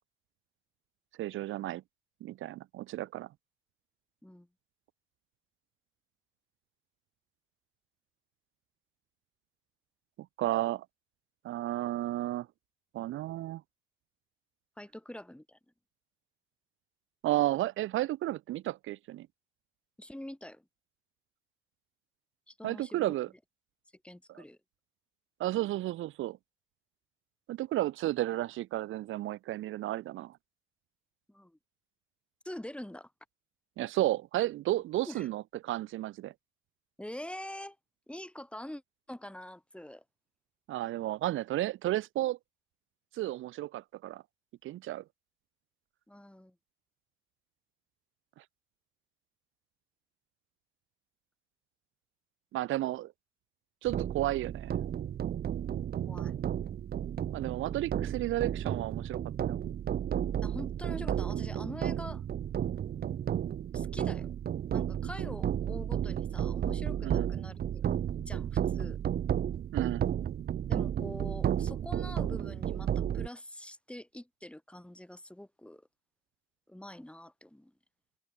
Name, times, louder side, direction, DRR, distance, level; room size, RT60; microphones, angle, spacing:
voice 1, 1.2-1.8 2.2-3.3 10.4-10.8 11.4-12.5 12.9-13.6 17.2-19.3 22.6-23.3 24.3-24.4 25.4-26.4 27.5-30.4 33.8-36.3 40.7-42.4 43.1-44.2 44.6-45.0 48.4-48.5 52.5-53.1 53.8-54.8 57.3-59.2 59.5-59.6 67.0-67.3 69.7-70.1, right 15 dB, 80° right, 1.0 m, -32 dB
voice 2, 14.8-15.6 20.0-20.6 22.5-23.1 24.0-24.6 31.3-31.6 32.4-33.1 35.0-35.3 37.0-37.8 38.1-38.8 39.1-40.0 46.1-46.5 56.1-56.3 60.4-62.2 63.7-64.3 64.7-67.8 68.2-69.0 70.7-75.8 76.7-77.7, left 1 dB, 5° left, 4.6 m, -45 dB
sound 1, 53.9-73.3, right 9 dB, 50° right, 0.8 m, -33 dB
cardioid pair, 90°, 20 cm